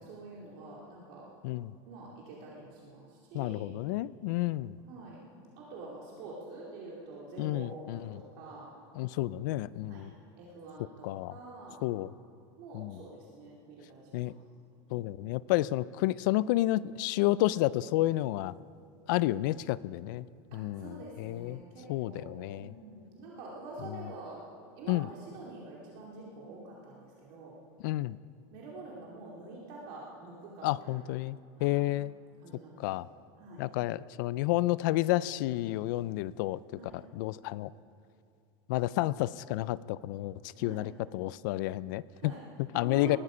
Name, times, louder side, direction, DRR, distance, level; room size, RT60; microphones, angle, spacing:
voice 1, 0.0-1.3 1.9-3.7 4.9-5.2 5.6-8.7 9.9-10.1 10.4-11.8 12.6-14.4 14.9-15.1 20.5-24.4 24.8-27.6 28.5-31.1 31.6-31.8 32.4-33.1 33.4-33.6 36.7-37.0 40.6-40.9 42.1-42.5 42.7-43.2, right 3 dB, 45° right, -4 dB, 2.5 m, -47 dB
voice 2, 1.4-1.8 3.3-4.7 7.4-8.2 9.0-10.1 11.0-11.3 11.8-12.1 12.7-13.0 14.1-14.3 14.9-18.5 19.1-20.3 20.5-21.6 21.9-22.7 23.8-24.0 24.9-25.1 27.8-28.2 30.6-32.1 32.8-33.1 33.6-36.6 36.9-37.7 38.7-42.3 42.6-43.2, left 16 dB, 50° left, 19 dB, 0.4 m, -31 dB
20.0 x 14.0 x 5.1 m, 2.4 s
supercardioid pair, 175°, 14 cm